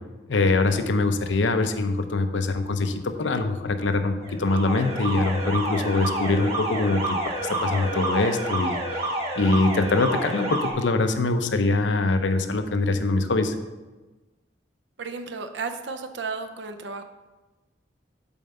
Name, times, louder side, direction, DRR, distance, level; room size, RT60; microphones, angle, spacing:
voice 1, 0.3-8.8 9.4-13.5, left 3 dB, 80° left, 8 dB, 0.7 m, -23 dB
Alarm, 4.2-10.7, right 1 dB, 35° right, 1.4 m, -29 dB
voice 2, 15.0-17.0, right 4 dB, 70° right, 7 dB, 0.6 m, -33 dB
7.1 x 4.4 x 6.7 m, 1.2 s
head